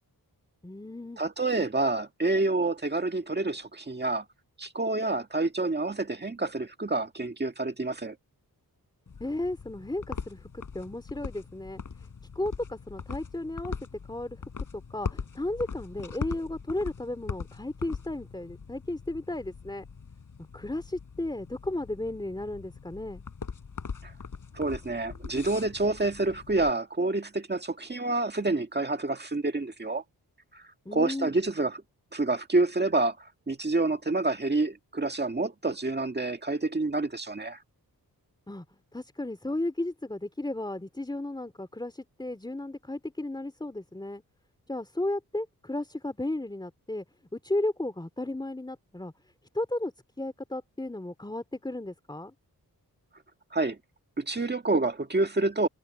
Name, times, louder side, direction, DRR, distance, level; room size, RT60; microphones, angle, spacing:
voice 1, 0.6-1.2 9.2-11.8 12.3-14.4 14.7-19.8 20.5-23.2 30.8-31.3 38.5-38.6 38.9-44.2 44.7-47.0 47.3-49.1 49.5-52.3, left 1 dB, 10° left, 3.0 m, -34 dB
voice 2, 1.2-4.3 4.6-8.2 24.0-24.1 24.5-30.0 30.5-30.6 30.9-31.8 32.1-37.6 53.5-53.8 54.2-55.7, right 2 dB, 25° right, 1.8 m, -28 dB
sound 1, 9.1-26.7, left 5 dB, 55° left, 5.1 m, -41 dB
wide cardioid pair, 110°, 37 cm